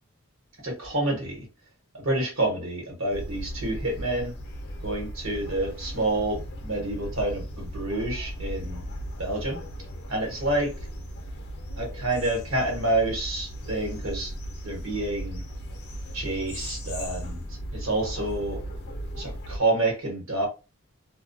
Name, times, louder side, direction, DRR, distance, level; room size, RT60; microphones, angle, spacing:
voice 1, 0.6-1.5 1.9-4.4 4.8-8.8 9.2-9.6 10.1-10.7 11.8-14.3 14.6-15.4 16.1-17.4 17.7-18.6 19.2-20.5, right 2 dB, 65° right, 1.1 m, -28 dB
sound 1, 3.1-19.6, equal, 50° left, 0.6 m, -37 dB
2.2 x 2.2 x 2.6 m
head